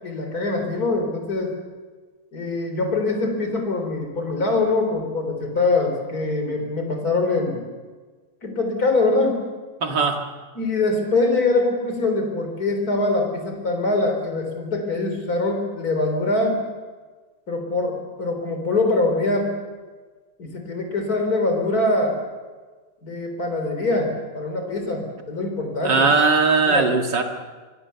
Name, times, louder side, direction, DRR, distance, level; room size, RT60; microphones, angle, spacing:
voice 1, 0.0-1.5 2.3-7.6 8.4-9.4 10.5-16.6 17.5-19.5 20.4-22.2 23.0-26.1 26.7-26.9, left 2 dB, 45° left, 4 dB, 4.4 m, -23 dB
voice 2, 9.8-10.2 25.8-27.2, right 4 dB, 60° right, 4 dB, 2.6 m, -19 dB
25.0 x 23.5 x 6.9 m, 1.4 s
omnidirectional pair, 2.2 m